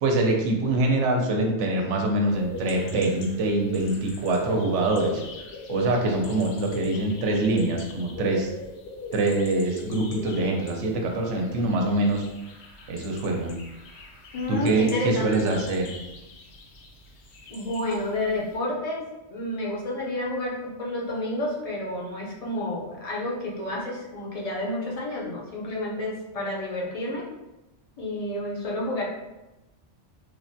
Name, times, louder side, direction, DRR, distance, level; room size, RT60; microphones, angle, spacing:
voice 1, 0.0-8.5 9.1-12.3 12.9-13.5 14.5-15.9, right 2 dB, 80° right, 1 dB, 0.9 m, -24 dB
sound 1, 2.3-18.6, left 3 dB, 70° left, 0.8 m, -42 dB
voice 2, 14.3-15.5 17.5-27.3 28.0-29.0, left 1 dB, 45° left, -4 dB, 0.5 m, -30 dB
3.2 x 2.1 x 2.6 m, 0.99 s
omnidirectional pair, 1.2 m